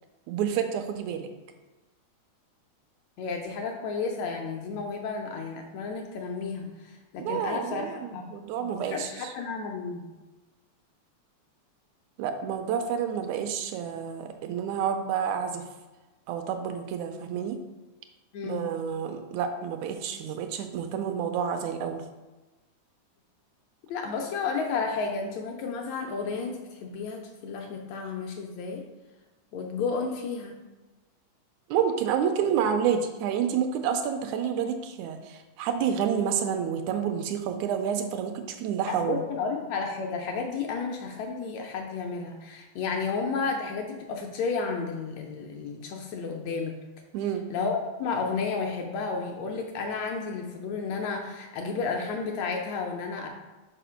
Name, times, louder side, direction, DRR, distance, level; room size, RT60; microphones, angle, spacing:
voice 1, 0.3-1.3 7.3-9.3 12.2-15.6 16.3-17.6 18.4-22.1 31.7-39.2 47.1-47.5, right 8 dB, 80° right, 6 dB, 1.8 m, -29 dB
voice 2, 3.2-8.3 8.6-10.0 18.3-18.6 23.9-28.8 29.5-30.6 38.9-46.7 47.5-53.3, left 4 dB, 75° left, 2 dB, 1.7 m, -32 dB
5.0 x 4.6 x 5.6 m, 1.1 s
omnidirectional pair, 3.5 m